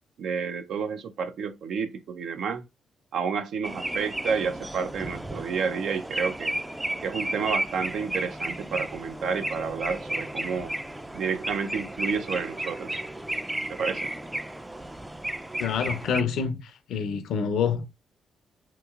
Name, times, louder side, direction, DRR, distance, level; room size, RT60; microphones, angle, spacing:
voice 1, 0.2-2.7 3.1-6.5 7.0-10.7 11.1-13.0 13.7-14.1, right 6 dB, 75° right, 0.5 m, -30 dB
sound 1, 3.6-16.2, right 1 dB, 10° right, 0.3 m, -33 dB
voice 2, 15.6-17.8, left 6 dB, 80° left, 0.5 m, -27 dB
2.9 x 2.9 x 2.4 m
cardioid pair, 70°, 0 cm